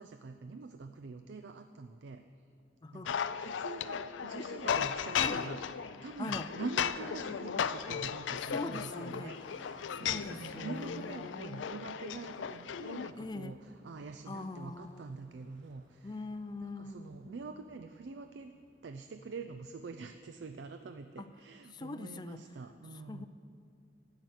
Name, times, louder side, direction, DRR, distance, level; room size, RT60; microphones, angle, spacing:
voice 1, 0.0-2.2 2.9-5.6 6.0-16.2 16.6-18.5 18.8-23.3, right 4 dB, 70° right, 8 dB, 0.4 m, -45 dB
sound 1, 3.1-13.1, left 7 dB, 85° left, 0.4 m, -36 dB
sound 2, 3.6-20.4, right 1 dB, 85° right, 1.4 m, -62 dB
voice 2, 5.2-5.5 6.2-6.5 8.4-9.3 9.9-11.7 13.2-13.6 14.3-15.1 16.0-17.3 21.2-21.3 21.7-22.4 23.1-23.3, left 3 dB, 25° left, 12 dB, 0.4 m, -42 dB
12.5 x 9.1 x 6.4 m, 2.5 s
head